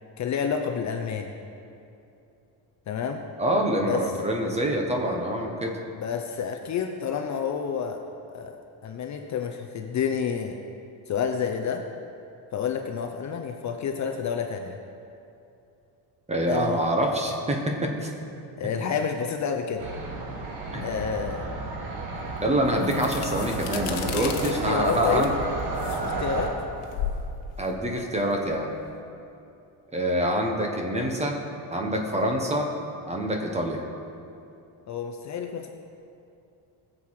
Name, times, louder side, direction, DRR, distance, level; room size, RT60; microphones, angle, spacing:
voice 1, 0.2-1.3 2.9-3.3 3.8-4.0 6.0-8.0 8.3-10.6 11.1-11.9 12.5-14.7 16.5-16.8 18.6-19.9 20.8-21.5 24.1-25.3 26.0-26.6 34.9-35.7, left 7 dB, 40° left, 4 dB, 0.7 m, -29 dB
voice 2, 3.4-5.8 16.3-18.1 20.7-20.8 22.4-25.3 27.6-28.7 29.9-31.4 31.7-32.7 33.1-33.8, right 1 dB, 15° right, 2 dB, 1.3 m, -26 dB
sound 1, 19.8-26.5, right 3 dB, 90° right, 2.9 m, -32 dB
sound 2, 22.2-28.9, left 7 dB, 65° left, 1.4 m, -37 dB
20.0 x 7.7 x 4.8 m, 2.7 s
cardioid pair, 170°, 45 cm